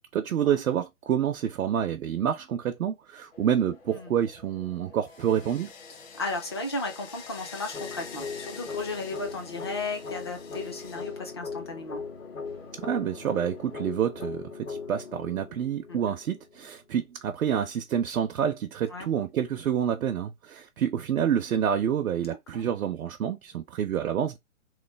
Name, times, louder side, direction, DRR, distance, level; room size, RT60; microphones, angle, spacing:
voice 1, 0.1-5.7 12.8-24.4, right 9 dB, 85° right, 0.6 m, -28 dB
sound 1, 3.3-13.9, left 5 dB, 45° left, 1.1 m, -48 dB
voice 2, 6.2-12.0 15.9-16.2 18.9-19.1 22.3-22.6, left 2 dB, 20° left, 0.3 m, -35 dB
sound 2, 7.7-16.7, left 5 dB, 85° left, 1.6 m, -39 dB
3.1 x 2.0 x 3.2 m
hypercardioid pair, 140°, 41 cm